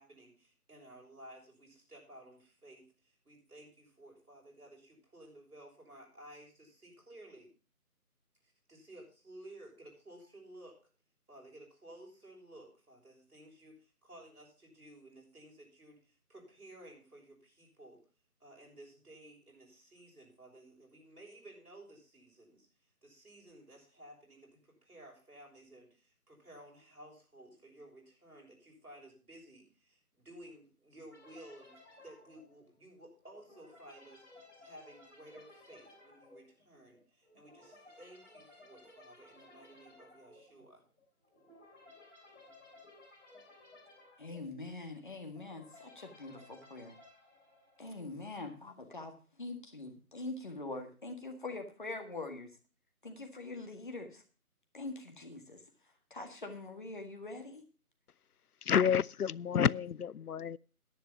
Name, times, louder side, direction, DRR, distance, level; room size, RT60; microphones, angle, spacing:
voice 1, 0.0-7.5 8.4-10.8 11.3-18.0 18.4-22.7 23.0-40.8, right 1 dB, 80° right, 7.0 m, -55 dB
sound 1, 31.1-48.3, left 2 dB, 5° left, 3.0 m, -59 dB
voice 2, 44.2-47.0 47.8-49.1 49.4-52.5 53.0-54.2 54.7-55.6 56.1-57.6, left 2 dB, 35° left, 1.8 m, -43 dB
voice 3, 58.6-60.6, left 8 dB, 80° left, 0.5 m, -29 dB
10.5 x 9.8 x 5.8 m
figure-of-eight pair, 165°, 45 cm